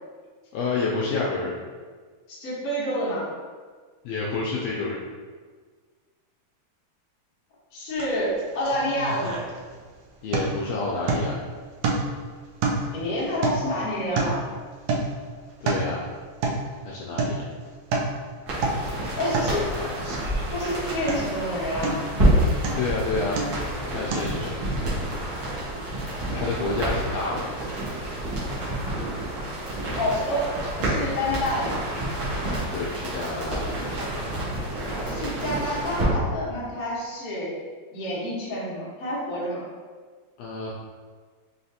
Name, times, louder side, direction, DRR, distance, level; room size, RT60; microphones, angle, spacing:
voice 1, 0.5-1.5 4.0-5.0 10.2-11.4 15.6-16.1 16.8-17.5 19.8-20.2 22.7-23.4 23.9-24.7 26.3-27.5 32.5-33.6 40.4-40.7, left 3 dB, 80° left, -5 dB, 1.5 m, -29 dB
voice 2, 2.3-3.2 7.7-9.4 12.9-14.4 19.1-19.6 20.5-22.0 30.0-30.5 30.8-31.8 35.0-37.5 37.9-39.6, left 1 dB, 50° left, -8 dB, 1.0 m, -28 dB
sound 1, 8.0-8.1 8.4-9.9 10.3-10.7 11.1-11.4 11.8-12.3 12.6-14.5 14.9-15.2 15.5-15.9 16.4-16.7 17.2-17.4 17.7-18.2 18.5-18.9 19.3-19.6 20.0-20.8 21.1-21.4 21.8-22.2 22.6-22.9 23.4-23.7 24.1-24.2, right 3 dB, 80° right, 1.5 m, -28 dB
sound 2, 18.5-36.0, right 1 dB, 55° right, 1.5 m, -28 dB
5.0 x 3.2 x 2.7 m, 1.5 s
omnidirectional pair, 3.4 m